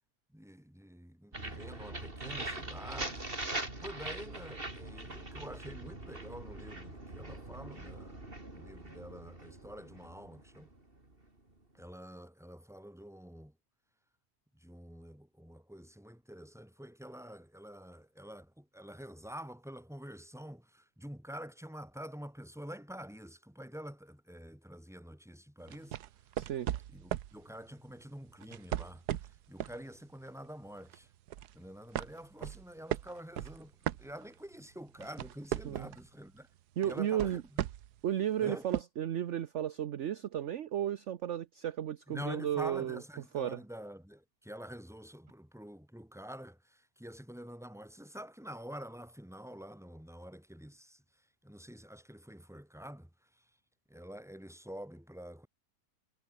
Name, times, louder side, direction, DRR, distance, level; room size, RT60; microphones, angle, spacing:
voice 1, 0.3-3.2 3.8-10.7 11.7-13.5 14.5-26.0 26.9-31.1 31.5-36.5 36.8-37.6 38.4-38.7 42.1-51.0 51.4-53.5 53.9-55.5, equal, ahead, 3.3 m, -47 dB
sound 1, 1.3-11.1, right 2 dB, 35° right, 4.7 m, -42 dB
sound 2, 25.7-27.4 28.4-29.8 30.2-30.5 30.9-31.5 31.9-34.5 34.9-36.1 36.8-38.0 38.7-38.8, right 12 dB, 75° right, 1.3 m, -37 dB
voice 2, 26.4-26.7 35.6-35.9 36.8-37.4 38.0-43.0 43.3-43.6, right 10 dB, 55° right, 0.9 m, -34 dB
omnidirectional pair, 1.7 m